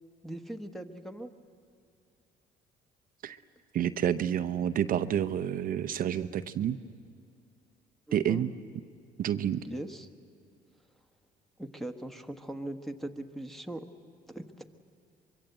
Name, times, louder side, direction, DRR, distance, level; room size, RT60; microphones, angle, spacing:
voice 1, 0.2-1.3 8.1-8.5 9.6-10.1 11.6-13.9 14.3-14.6, right 1 dB, ahead, 7 dB, 1.3 m, -40 dB
voice 2, 3.7-6.8 8.1-8.5 9.2-9.6, right 10 dB, 55° right, 12 dB, 0.7 m, -29 dB
24.5 x 23.0 x 7.9 m, 2.4 s
cardioid pair, 110°, 17 cm